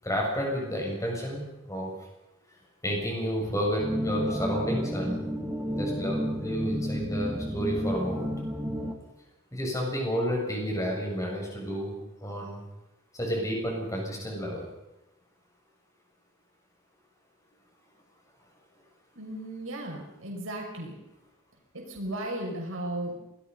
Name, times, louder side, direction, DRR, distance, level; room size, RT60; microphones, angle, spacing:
voice 1, 0.0-1.4 1.7-1.9 2.8-5.3 5.7-8.3 9.5-11.9 12.2-12.6 13.1-14.7, equal, 15° left, -1 dB, 7.6 m, -31 dB
sound 1, 3.8-8.9, equal, 5° right, 2.4 m, -31 dB
voice 2, 19.1-20.9 21.7-23.1, right 1 dB, 75° right, 0 dB, 6.1 m, -35 dB
27.0 x 19.5 x 5.6 m, 0.93 s
head